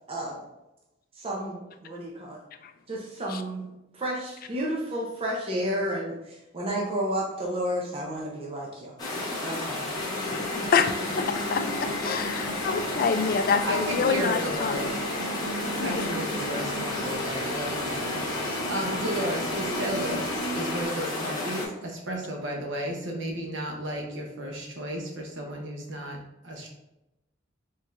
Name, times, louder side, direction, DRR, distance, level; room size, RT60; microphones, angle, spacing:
voice 1, 0.1-0.4 1.2-2.4 2.9-3.7 3.9-8.9 9.4-9.9, equal, 30° right, -3 dB, 0.7 m, -31 dB
sound 1, 9.0-21.7, left 2 dB, 20° left, 1.0 m, -32 dB
sound 2, 9.9-20.9, left 1 dB, 85° left, 0.8 m, -35 dB
voice 2, 10.7-14.8 15.8-16.1, left 6 dB, 50° left, 8 dB, 0.3 m, -27 dB
voice 3, 13.6-14.9 15.8-20.3 20.5-26.7, right 1 dB, 65° right, 1 dB, 1.0 m, -33 dB
4.5 x 3.6 x 2.5 m, 0.93 s
head